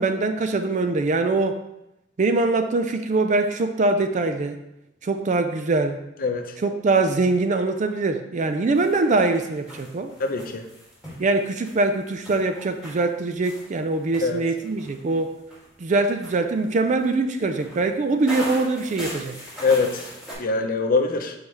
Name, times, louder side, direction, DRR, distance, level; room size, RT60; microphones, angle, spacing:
voice 1, 0.0-1.6 2.2-4.6 5.0-6.0 6.6-10.1 11.2-15.3 15.8-19.3, right 3 dB, 40° right, 7 dB, 0.4 m, -23 dB
voice 2, 6.2-6.5 10.2-10.6 14.2-14.4 19.6-20.0 20.4-21.3, left 4 dB, 50° left, 5 dB, 0.6 m, -23 dB
sound 1, 8.7-20.3, equal, 5° right, 2.4 m, -40 dB
7.0 x 4.8 x 3.2 m, 0.87 s
head